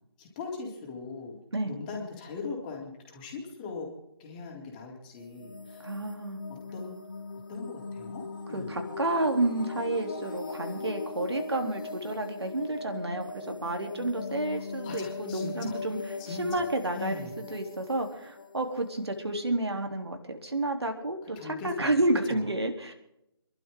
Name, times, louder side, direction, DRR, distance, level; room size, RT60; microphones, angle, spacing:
voice 1, 0.2-1.4 1.6-3.9 4.2-5.9 6.5-7.0 7.5-8.7 14.5-15.7 16.2-16.7 16.9-17.3 21.4-21.9 22.3-22.5, left 4 dB, 20° left, -1 dB, 3.5 m, -40 dB
sound 1, 5.2-19.9, left 4 dB, 45° left, 2.2 m, -40 dB
voice 2, 5.8-6.4 8.5-22.9, right 2 dB, 65° right, 4 dB, 3.5 m, -30 dB
27.5 x 12.5 x 3.9 m, 0.79 s
figure-of-eight pair, 150°, 15 cm